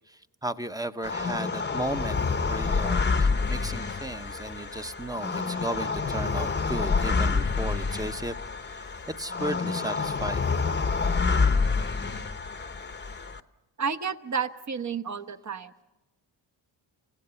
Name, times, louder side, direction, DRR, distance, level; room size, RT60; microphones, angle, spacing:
voice 1, 0.1-8.3 8.7-8.8 9.2-10.4, right 1 dB, 10° right, 10 dB, 0.8 m, -35 dB
sound 1, 1.0-13.4, left 4 dB, 25° left, 0.9 m, -28 dB
voice 2, 13.8-15.7, right 6 dB, 40° right, 10 dB, 1.1 m, -31 dB
28.5 x 16.5 x 7.0 m, 1.1 s
cardioid pair, 70°, 45 cm